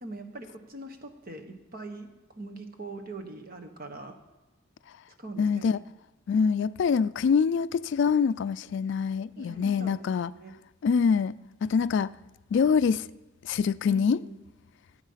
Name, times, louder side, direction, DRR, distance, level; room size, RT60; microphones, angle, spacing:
voice 1, 0.0-4.1 5.2-5.8 9.4-10.5 13.9-14.3, right 2 dB, 45° right, 1.3 m, -42 dB
voice 2, 5.4-5.8 6.3-10.3 10.8-11.3 11.6-12.1 12.5-13.1 13.4-14.2, left 6 dB, 60° left, 0.3 m, -25 dB
16.5 x 8.1 x 5.7 m
head